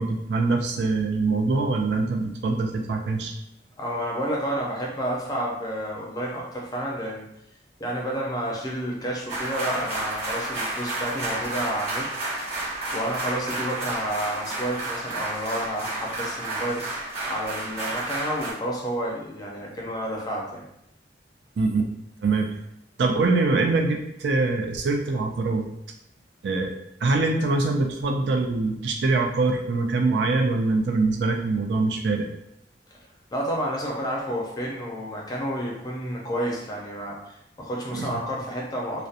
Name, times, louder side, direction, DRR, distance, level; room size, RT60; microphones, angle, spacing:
voice 1, 0.0-3.3 21.6-21.9 22.2-22.6 23.0-25.7 26.4-26.7 27.0-32.3 37.9-38.2, right 3 dB, 70° right, 3 dB, 0.4 m, -24 dB
voice 2, 3.8-7.3 7.8-12.1 12.9-16.8 17.3-20.7 32.9-33.0 33.3-39.1, equal, 20° left, -3 dB, 0.5 m, -30 dB
sound 1, 9.3-18.5, right 2 dB, 35° right, 1.4 m, -31 dB
2.7 x 2.1 x 2.4 m, 0.80 s
head